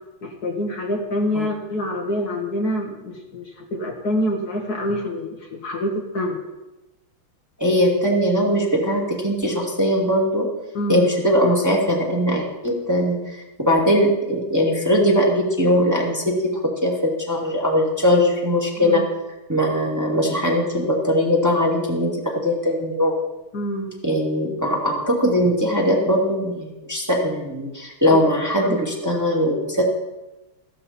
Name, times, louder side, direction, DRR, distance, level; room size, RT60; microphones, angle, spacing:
voice 1, 0.2-6.4 10.7-11.0 18.8-19.0 23.5-23.9 28.1-28.2 28.6-28.8, left 1 dB, 50° left, 0 dB, 1.9 m, -26 dB
voice 2, 7.6-10.5 10.9-19.0 19.5-23.1 24.0-29.8, equal, 10° right, -3 dB, 2.2 m, -20 dB
15.0 x 12.5 x 4.3 m, 1.0 s
omnidirectional pair, 2.3 m